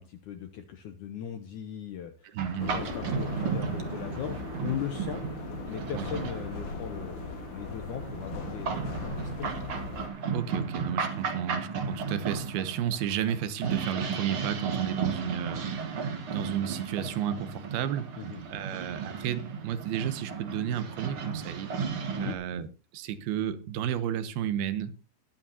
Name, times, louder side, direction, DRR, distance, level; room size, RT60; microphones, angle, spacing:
voice 1, 0.0-2.4 2.6-5.2 5.7-7.1 7.5-9.7 18.2-18.4 22.2-22.4, left 8 dB, 80° left, 1.8 m, -38 dB
voice 2, 2.2-2.9 5.9-6.1 9.4-9.5 10.3-18.1 18.5-21.7 22.2-22.7 22.9-24.9, right 9 dB, 75° right, 2.8 m, -32 dB
sound 1, 2.4-22.3, right 5 dB, 55° right, 1.7 m, -35 dB
sound 2, 2.6-10.1, left 5 dB, 60° left, 2.8 m, -39 dB
20.5 x 8.7 x 2.8 m
omnidirectional pair, 4.5 m